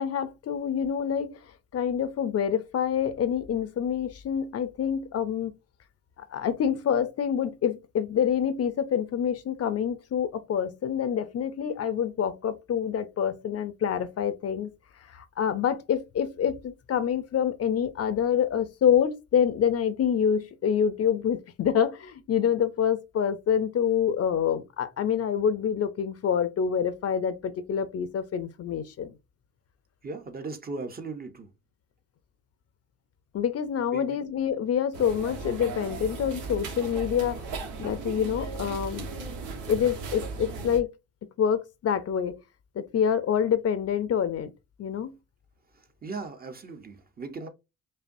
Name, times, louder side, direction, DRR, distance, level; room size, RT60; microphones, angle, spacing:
voice 1, 0.0-1.4 1.7-5.5 6.3-14.7 15.1-29.1 33.3-37.5 37.8-39.1 39.6-40.9 41.4-42.4 42.8-44.5 44.8-45.1, left 8 dB, 55° left, 0.6 m, -26 dB
voice 2, 30.0-31.5 33.9-34.2 46.0-47.5, right 3 dB, 30° right, 0.8 m, -37 dB
sound 1, 34.9-40.8, right 4 dB, 80° right, 1.3 m, -37 dB
5.4 x 2.2 x 2.6 m
cardioid pair, 90°, 30 cm